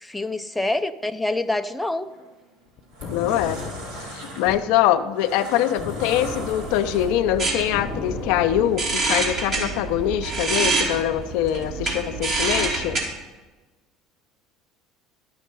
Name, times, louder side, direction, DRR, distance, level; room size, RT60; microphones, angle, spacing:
voice 1, 0.0-2.1, left 2 dB, 5° left, 7 dB, 0.5 m, -26 dB
sound 1, 2.0-2.3 2.7-7.4, right 1 dB, 90° right, 2.7 m, -38 dB
sound 2, 2.8-4.8 5.8-9.1, left 6 dB, 55° left, 0.9 m, -35 dB
voice 2, 3.1-3.6 4.1-13.0, left 11 dB, 75° left, 9 dB, 0.5 m, -23 dB
sound 3, 6.2-13.0, right 3 dB, 50° right, 2.8 m, -27 dB
11.0 x 6.4 x 5.3 m, 1.2 s
supercardioid pair, 95°, 0 cm